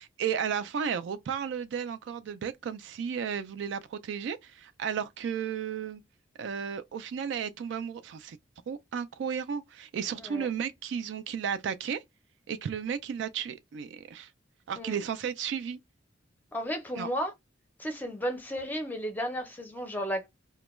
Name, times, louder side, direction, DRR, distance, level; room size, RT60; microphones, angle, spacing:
voice 1, 0.0-6.0 6.4-8.4 8.7-12.0 12.5-14.3 14.7-15.8 17.0-17.1, right 7 dB, 70° right, 0.3 m, -33 dB
voice 2, 16.5-17.3 17.8-20.3, equal, 10° left, 0.5 m, -33 dB
2.2 x 2.1 x 2.9 m
head